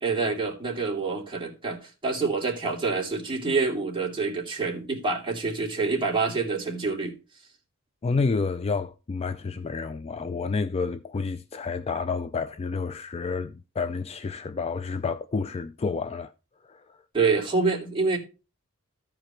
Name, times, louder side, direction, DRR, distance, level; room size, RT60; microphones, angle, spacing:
voice 1, 0.0-7.1 17.1-18.2, right 4 dB, 25° right, 2.7 m, -27 dB
voice 2, 8.0-16.3 16.7-17.0, left 4 dB, 30° left, 0.4 m, -29 dB
13.5 x 5.0 x 4.3 m
head